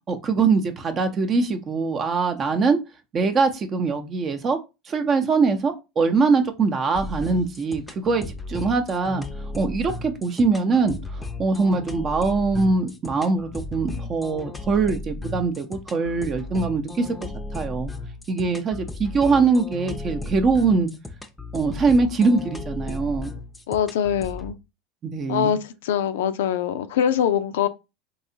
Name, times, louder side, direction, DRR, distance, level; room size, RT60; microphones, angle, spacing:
voice 1, 0.1-2.8 3.1-4.6 4.9-9.2 9.6-17.9 18.3-20.9 21.5-23.3 25.0-25.5, right 4 dB, 35° right, 0.7 m, -22 dB
sound 1, 6.9-24.5, left 2 dB, 10° left, 0.6 m, -35 dB
voice 2, 23.7-24.6 25.3-27.7, left 9 dB, 75° left, 0.3 m, -23 dB
3.1 x 2.8 x 2.7 m
hypercardioid pair, 85°, 0 cm